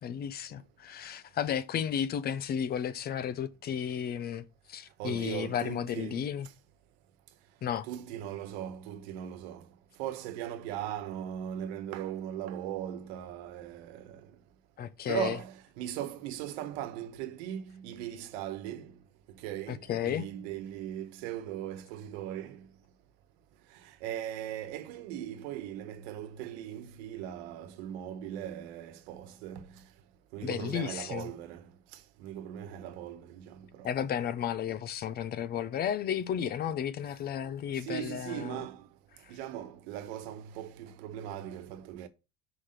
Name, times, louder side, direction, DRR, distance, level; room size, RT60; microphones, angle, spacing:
voice 1, 0.0-6.5 7.6-7.9 14.8-15.4 19.7-20.2 30.4-31.3 33.8-38.7, left 9 dB, 30° left, 0.5 m, -33 dB
voice 2, 5.0-6.3 7.9-9.6 10.0-14.3 15.1-19.0 19.4-22.7 23.8-29.7 30.3-31.7 31.9-33.9 37.8-38.9 39.3-42.1, right 11 dB, 90° right, 1.2 m, -39 dB
5.7 x 5.1 x 6.4 m
cardioid pair, 155°, 32 cm